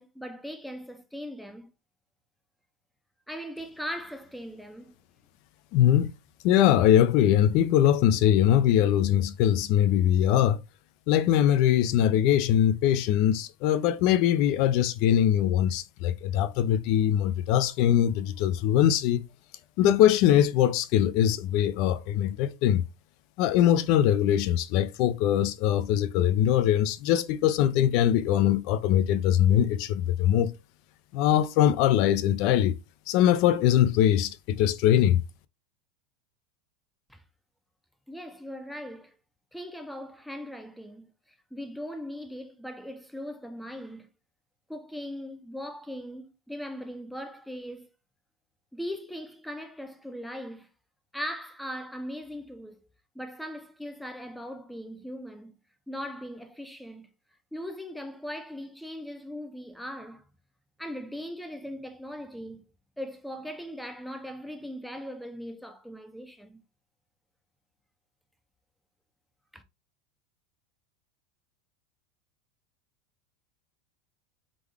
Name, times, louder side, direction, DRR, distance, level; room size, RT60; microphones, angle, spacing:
voice 1, 0.0-1.7 3.3-4.9 37.1-37.2 38.1-39.1 39.5-41.1 41.5-44.1 44.7-47.9 48.7-50.7 51.1-52.8 53.1-55.6 55.9-57.1 57.5-60.3 60.8-62.7 63.0-66.6 69.5-69.6, equal, ahead, 0.6 m, -39 dB
voice 2, 5.7-6.1 6.4-10.6 11.1-19.2 19.8-22.8 23.4-30.5 31.1-32.8 33.1-35.2, left 11 dB, 55° left, 0.4 m, -22 dB
3.8 x 3.5 x 3.4 m
supercardioid pair, 150°, 0 cm